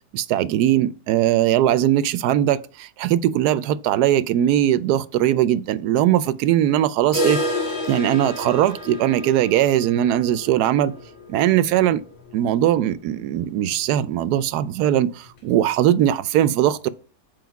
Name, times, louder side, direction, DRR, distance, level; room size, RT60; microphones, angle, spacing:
voice 1, 0.1-7.4 7.9-11.0 11.3-12.0 12.3-16.9, right 12 dB, 90° right, 1.1 m, -20 dB
sound 1, 7.1-12.9 13.2-13.3 13.7-13.8 14.3-14.4 15.3-15.4, left 1 dB, 60° left, 2.1 m, -30 dB
7.9 x 5.0 x 4.7 m
omnidirectional pair, 1.6 m